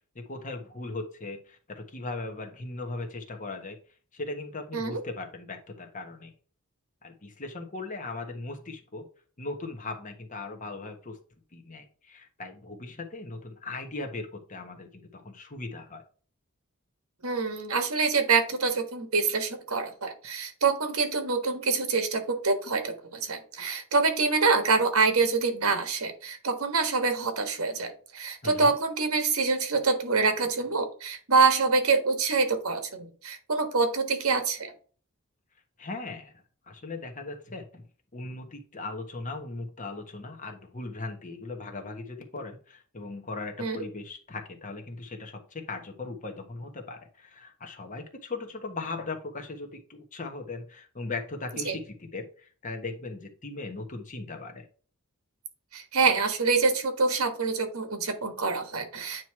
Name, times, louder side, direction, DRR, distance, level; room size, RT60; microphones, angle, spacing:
voice 1, 0.1-3.8 4.1-6.3 7.0-9.0 9.4-11.2 11.5-16.0 28.4-28.7 35.8-36.3 36.7-37.8 38.1-54.7, left 3 dB, 35° left, 4 dB, 1.3 m, -38 dB
voice 2, 17.2-34.7 43.6-43.8 51.7-51.8 55.7-59.2, right 4 dB, 85° right, 7 dB, 1.5 m, -26 dB
9.3 x 3.1 x 4.6 m, 0.41 s
head